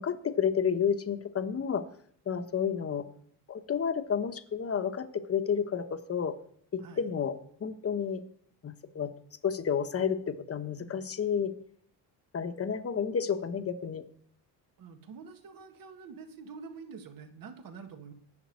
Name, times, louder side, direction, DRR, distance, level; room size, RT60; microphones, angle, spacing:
voice 1, 0.0-1.9 2.3-3.1 3.5-6.4 6.7-8.2 8.6-9.1 9.4-11.5 12.3-14.0, left 7 dB, 35° left, 9 dB, 1.2 m, -31 dB
voice 2, 14.8-18.1, right 5 dB, 55° right, 6 dB, 1.8 m, -46 dB
10.5 x 7.1 x 9.6 m, 0.63 s
cardioid pair, 110°, 40 cm